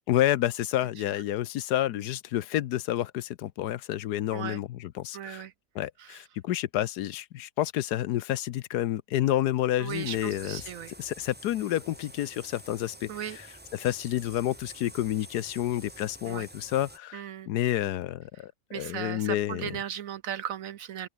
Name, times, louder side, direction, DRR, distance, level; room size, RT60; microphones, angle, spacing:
voice 1, 0.1-5.4 5.7-10.6 11.0-13.5 13.7-19.7, left 13 dB, 75° left, 1.2 m, -29 dB
voice 2, 5.1-5.5 6.0-6.2 9.8-10.9 13.1-13.4 16.3-16.5 17.1-17.5 18.7-21.1, right 10 dB, 65° right, 0.9 m, -37 dB
sound 1, 9.9-17.0, right 1 dB, 10° right, 0.9 m, -48 dB
open air
omnidirectional pair, 1.8 m